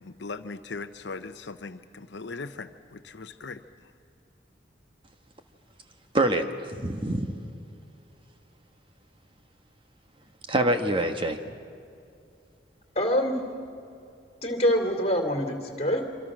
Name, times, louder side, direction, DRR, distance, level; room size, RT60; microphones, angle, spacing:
voice 1, 0.0-3.9, left 3 dB, 75° left, 9 dB, 0.8 m, -39 dB
voice 2, 6.1-7.5 10.5-11.5, right 1 dB, 30° right, 6 dB, 1.2 m, -26 dB
voice 3, 12.9-13.4 14.4-16.1, equal, 35° left, 5 dB, 2.7 m, -25 dB
27.0 x 25.5 x 6.2 m, 2.5 s
head